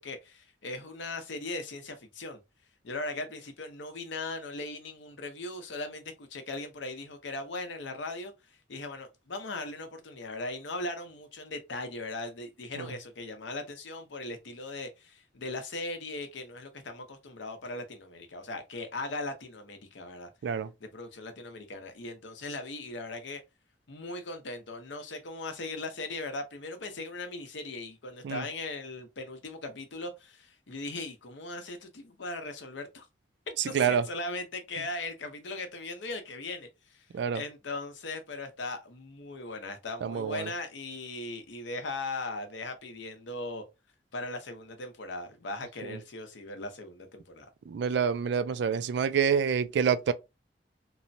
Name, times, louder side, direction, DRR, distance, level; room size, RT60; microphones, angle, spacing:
voice 1, 0.0-2.4 2.8-8.3 8.7-20.3 20.8-23.4 23.9-33.1 33.6-37.1 37.3-43.6 44.1-47.5, left 2 dB, 90° left, 0.7 m, -39 dB
voice 2, 40.0-40.5 45.8-46.0 47.7-50.1, right 7 dB, 70° right, 0.3 m, -27 dB
3.0 x 2.1 x 2.6 m
head